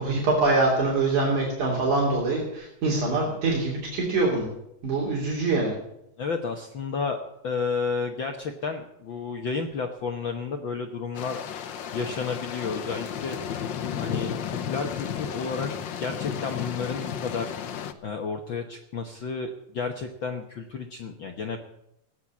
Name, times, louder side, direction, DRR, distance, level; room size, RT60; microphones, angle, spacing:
voice 1, 0.0-4.5 4.8-5.7, right 3 dB, 75° right, -3 dB, 4.5 m, -24 dB
voice 2, 6.2-7.2 7.4-11.4 11.9-13.4 13.9-15.7 16.0-17.5 18.0-21.6, left 5 dB, 60° left, 4 dB, 1.4 m, -31 dB
sound 1, 11.1-17.9, left 8 dB, 80° left, 1.0 m, -33 dB
16.5 x 9.5 x 8.4 m, 0.82 s
omnidirectional pair, 3.5 m